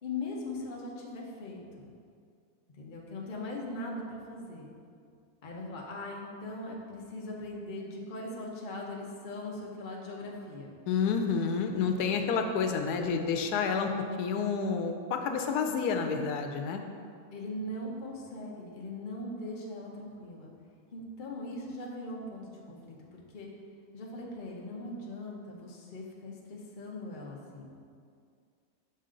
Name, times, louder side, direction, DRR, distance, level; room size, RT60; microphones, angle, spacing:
voice 1, 0.0-1.9 2.8-4.7 5.4-10.7 17.3-20.5 20.9-23.5 23.9-27.7, left 2 dB, 40° left, -2 dB, 0.9 m, -40 dB
voice 2, 10.9-13.9 14.2-16.8, left 5 dB, 90° left, 5 dB, 1.1 m, -29 dB
6.0 x 5.5 x 3.8 m, 2.3 s
omnidirectional pair, 1.6 m